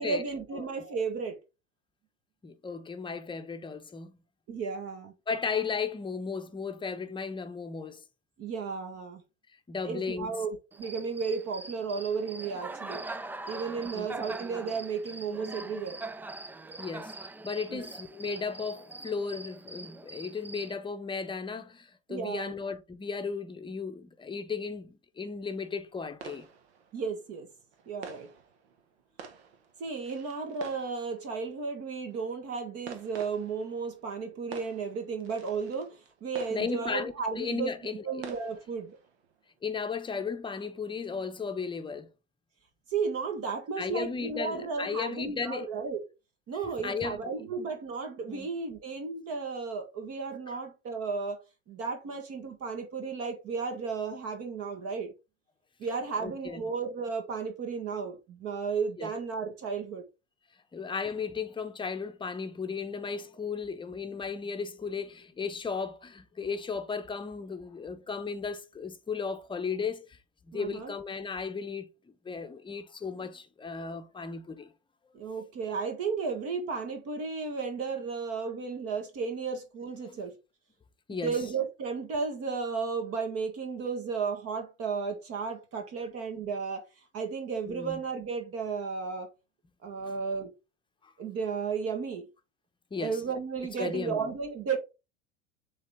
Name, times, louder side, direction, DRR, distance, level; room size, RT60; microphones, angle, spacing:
voice 1, 0.0-1.4 4.5-5.1 8.4-9.2 9.8-13.0 13.5-16.0 17.7-17.9 22.1-22.5 26.9-27.5 27.9-28.3 29.8-37.7 38.1-39.0 42.9-46.0 46.5-51.4 51.7-55.1 55.8-60.0 70.5-70.9 75.1-80.4 81.2-86.9 87.1-89.3 89.8-90.5 91.2-92.3 93.0-94.8, right 5 dB, 40° right, 1.7 m, -34 dB
voice 2, 2.4-4.2 5.3-8.0 9.7-10.4 13.9-14.1 16.8-17.2 17.4-26.5 36.5-38.2 39.6-42.1 43.8-45.7 46.8-47.3 48.3-48.5 50.5-50.6 56.2-56.6 59.0-59.1 60.7-70.2 70.5-74.7 80.0-80.2 81.1-81.4 87.7-88.0 92.9-93.2 93.8-94.3, left 5 dB, 15° left, 0.9 m, -35 dB
Cricket, 10.7-20.7, right 2 dB, 5° right, 0.4 m, -42 dB
sound 1, 25.5-39.6, right 6 dB, 60° right, 1.6 m, -50 dB
7.4 x 3.8 x 3.6 m
hypercardioid pair, 85°, 35 cm